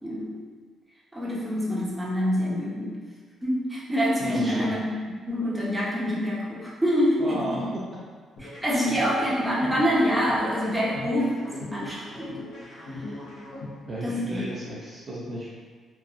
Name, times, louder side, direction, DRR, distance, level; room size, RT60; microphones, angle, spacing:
voice 1, 0.0-0.4 1.1-3.0 3.4-4.9 5.3-7.6 8.4-13.2 14.0-14.4, equal, 10° right, -7 dB, 0.8 m, -26 dB
voice 2, 4.2-4.7 7.2-7.8 13.9-15.5, right 1 dB, 40° right, -6 dB, 0.6 m, -34 dB
sound 1, 8.4-14.4, left 2 dB, 70° left, 0.9 m, -40 dB
3.1 x 2.2 x 2.5 m, 1.5 s
cardioid pair, 90°, 0 cm